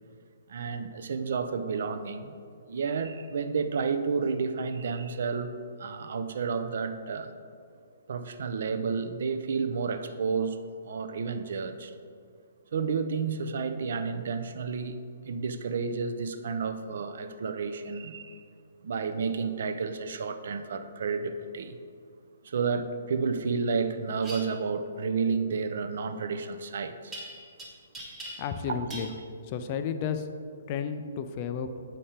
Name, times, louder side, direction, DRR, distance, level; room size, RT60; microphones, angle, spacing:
voice 1, 0.5-2.3 2.7-5.5 5.8-7.3 8.1-10.6 10.8-11.9 12.7-15.0 15.2-18.4 18.8-21.8 22.4-27.2 28.7-29.1, right 5 dB, 50° right, 9 dB, 0.5 m, -31 dB
sound 1, 24.2-24.4 27.1-27.6 27.9-28.6 28.9-29.1, right 1 dB, 10° right, 0.8 m, -41 dB
voice 2, 28.4-29.1 29.5-30.2 30.7-31.7, left 7 dB, 25° left, 9 dB, 0.3 m, -32 dB
7.5 x 5.1 x 4.3 m, 2.2 s
hypercardioid pair, 175°, 0 cm